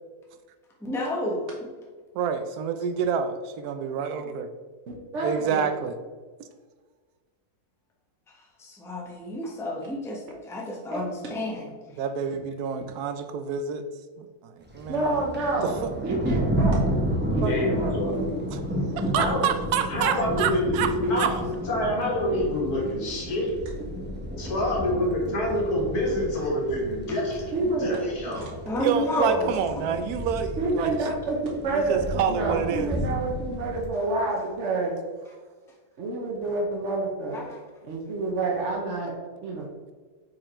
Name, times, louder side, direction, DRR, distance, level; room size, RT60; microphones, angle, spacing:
voice 1, 0.8-1.5 8.6-10.2 10.5-11.6 28.6-29.5 37.3-37.6, left 1 dB, ahead, -3 dB, 0.8 m, -30 dB
voice 2, 2.1-4.5 5.2-5.9 11.9-13.8 14.2-15.2 15.8-15.9 17.4-17.5 18.5-18.6 18.9-21.3 28.8-30.9 31.7-32.9, right 7 dB, 75° right, 9 dB, 1.1 m, -28 dB
voice 3, 4.9-5.6 10.9-11.0 14.9-15.7 16.0-17.0 17.3-18.3 20.3-20.5 21.0-21.2 27.5-28.0 30.6-31.4 31.6-34.9 36.0-37.4 37.8-39.2 39.4-39.7, right 2 dB, 55° right, -1 dB, 1.1 m, -28 dB
Thunder, 14.7-33.9, equal, 15° right, 0.4 m, -31 dB
voice 4, 17.4-18.1 19.1-19.4 19.9-23.5 24.4-28.5, left 1 dB, 75° left, -3 dB, 2.1 m, -27 dB
4.8 x 4.6 x 4.2 m, 1.4 s
omnidirectional pair, 1.7 m